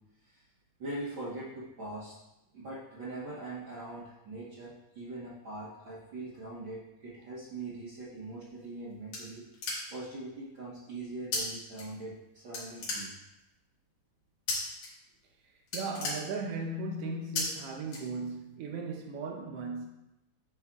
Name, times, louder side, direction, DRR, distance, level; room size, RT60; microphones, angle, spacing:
voice 1, 0.8-2.2 2.5-9.4 9.9-13.1, right 2 dB, 50° right, 1.7 m, -42 dB
sound 1, 8.4-10.1 11.3-11.4 11.7-12.3 12.5-13.5 14.5-14.9 15.2-15.3 15.6-16.8 17.3-17.4 17.9-18.5, left 3 dB, 75° left, 3.2 m, -35 dB
voice 2, 15.4-19.9, right 3 dB, 80° right, 1.3 m, -37 dB
10.5 x 5.3 x 2.4 m
omnidirectional pair, 3.5 m